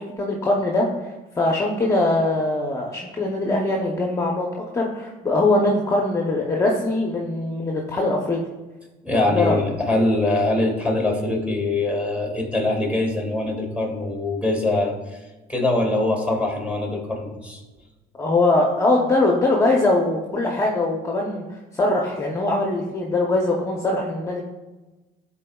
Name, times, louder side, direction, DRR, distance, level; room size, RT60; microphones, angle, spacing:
voice 1, 0.2-0.9 1.4-4.5 4.7-8.4 9.1-9.6 18.2-24.4, left 2 dB, 15° left, -1 dB, 0.7 m, -22 dB
voice 2, 9.0-15.2 15.5-17.6, left 2 dB, 5° right, 1 dB, 1.9 m, -23 dB
11.0 x 4.2 x 2.3 m, 1.1 s
cardioid pair, 110°, 17 cm